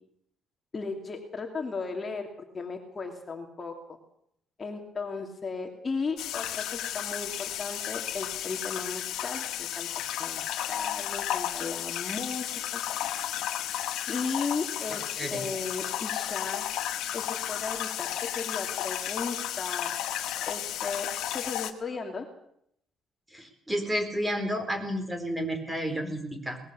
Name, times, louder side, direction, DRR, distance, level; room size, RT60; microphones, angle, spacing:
voice 1, 0.7-2.3 2.5-3.7 4.6-9.9 10.2-12.8 14.1-16.7 17.1-18.1 18.3-19.9 20.5-21.1 21.3-22.3, left 4 dB, 30° left, 2 dB, 2.7 m, -35 dB
sound 1, 6.2-21.7, left 12 dB, 85° left, 1.7 m, -33 dB
voice 2, 15.2-15.5 23.3-26.6, equal, 10° right, 6 dB, 4.5 m, -31 dB
21.5 x 20.5 x 7.0 m, 0.72 s
cardioid pair, 140°, 0 cm